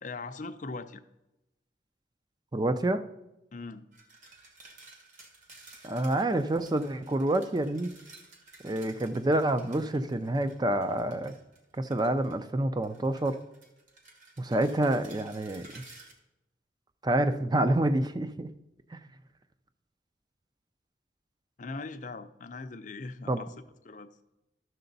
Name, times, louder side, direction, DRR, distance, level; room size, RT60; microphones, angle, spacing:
voice 1, 0.0-1.0 3.5-3.9 21.6-23.5 23.8-24.1, left 3 dB, 45° left, 9 dB, 0.5 m, -40 dB
voice 2, 2.5-3.0 5.8-7.9 8.6-11.4 11.8-13.4 14.4-15.7 17.0-18.5 18.9-19.0 23.3-23.4, right 1 dB, 25° right, 11 dB, 0.5 m, -27 dB
sound 1, 3.9-12.5 12.8-16.1, right 3 dB, 45° right, 1.7 m, -54 dB
12.5 x 6.7 x 4.0 m, 0.94 s
head